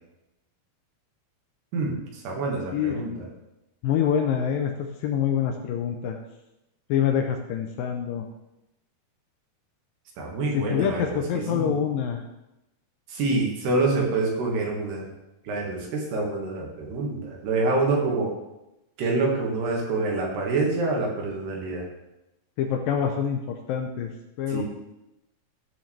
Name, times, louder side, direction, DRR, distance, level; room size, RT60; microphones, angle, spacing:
voice 1, 1.7-3.3 10.2-11.7 13.1-15.1 15.5-18.3 19.0-21.9 24.5-24.6, right 3 dB, 85° right, -1 dB, 3.9 m, -26 dB
voice 2, 2.6-3.0 3.8-6.2 6.9-8.3 10.5-12.2 22.6-24.1 24.4-24.6, left 8 dB, 75° left, 4 dB, 2.2 m, -26 dB
15.0 x 6.1 x 3.4 m, 0.93 s
omnidirectional pair, 4.5 m